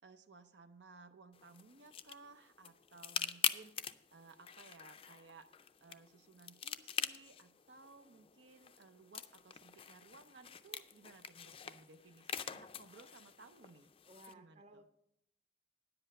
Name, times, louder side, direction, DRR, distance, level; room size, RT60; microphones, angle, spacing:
voice 1, 0.0-5.5 5.8-13.9 14.3-14.8, right 3 dB, 90° right, 8 dB, 0.7 m, -59 dB
sound 1, 1.3-14.3, left 8 dB, 30° left, 0.4 m, -44 dB
voice 2, 14.0-14.9, right 1 dB, 40° right, 7 dB, 0.8 m, -58 dB
10.0 x 7.9 x 5.4 m, 0.77 s
head